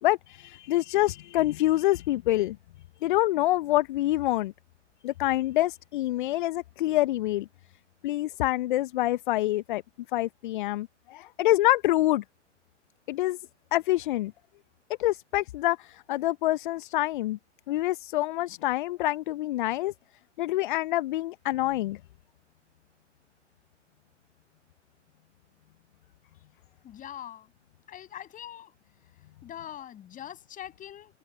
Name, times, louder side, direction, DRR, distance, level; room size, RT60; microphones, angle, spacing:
voice 1, 0.0-2.6 3.0-4.5 5.0-7.5 8.0-9.8 10.1-12.2 13.1-13.4 13.7-14.3 15.0-17.4 17.7-19.9 20.4-22.0, left 16 dB, 40° left, 1.0 m, -26 dB
voice 2, 26.8-27.5 27.9-28.7 29.4-31.2, left 11 dB, 20° left, 7.5 m, -42 dB
open air
figure-of-eight pair, 110°, 37 cm